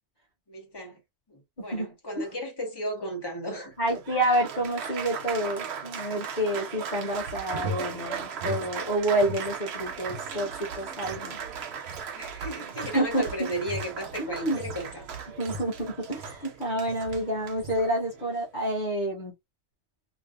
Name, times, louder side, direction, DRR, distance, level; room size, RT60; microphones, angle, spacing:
voice 1, 0.5-1.0 1.3-3.7 12.1-15.2 16.7-16.9, equal, 20° left, 1.4 m, -35 dB
Applause, 3.7-18.4, right 7 dB, 65° right, 1.0 m, -38 dB
voice 2, 3.8-11.4 12.9-13.5 14.2-14.6 15.4-19.3, right 1 dB, 40° left, 1.2 m, -28 dB
sound 1, 7.1-9.5 9.8-16.5 16.9-17.2 17.5-17.9, right 1 dB, 85° right, 1.2 m, -40 dB
3.2 x 3.0 x 2.6 m
omnidirectional pair, 1.2 m